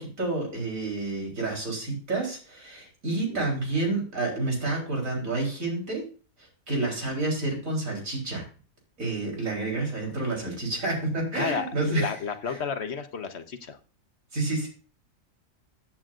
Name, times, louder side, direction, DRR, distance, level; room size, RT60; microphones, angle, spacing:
voice 1, 0.0-6.1 6.7-8.4 9.0-12.1 14.3-14.7, right 2 dB, 85° right, 0 dB, 4.2 m, -29 dB
voice 2, 11.3-13.8, left 6 dB, 55° left, 9 dB, 1.2 m, -32 dB
15.5 x 8.5 x 2.5 m, 0.36 s
omnidirectional pair, 1.4 m